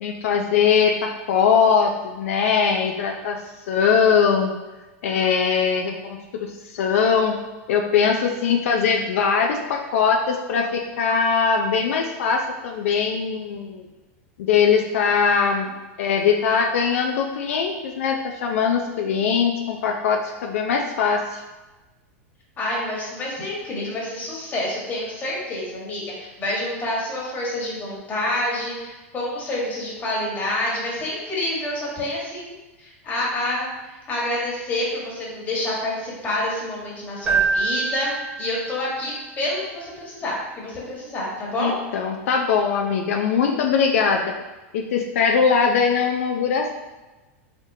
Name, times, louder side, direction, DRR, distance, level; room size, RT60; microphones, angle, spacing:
voice 1, 0.0-3.4 3.7-4.5 5.0-7.4 7.7-13.9 14.4-15.7 16.0-21.4 41.6-44.4 44.7-46.7, left 6 dB, 75° left, 2 dB, 0.4 m, -21 dB
voice 2, 22.6-38.1 38.4-41.8, left 1 dB, 25° left, -5 dB, 1.4 m, -28 dB
Keyboard (musical), 37.3-39.1, right 5 dB, 15° right, 0.7 m, -25 dB
3.6 x 3.5 x 2.6 m, 1.1 s
supercardioid pair, 130°, 7 cm